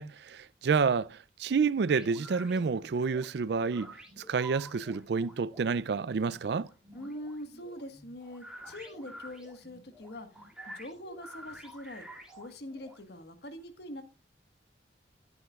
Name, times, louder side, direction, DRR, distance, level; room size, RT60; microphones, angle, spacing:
voice 1, 0.0-6.7, right 5 dB, 60° right, 0.4 m, -29 dB
sound 1, 1.9-13.0, right 1 dB, 5° right, 2.9 m, -49 dB
voice 2, 6.9-12.1 12.3-14.0, left 1 dB, 60° left, 1.5 m, -43 dB
15.5 x 9.8 x 2.4 m
head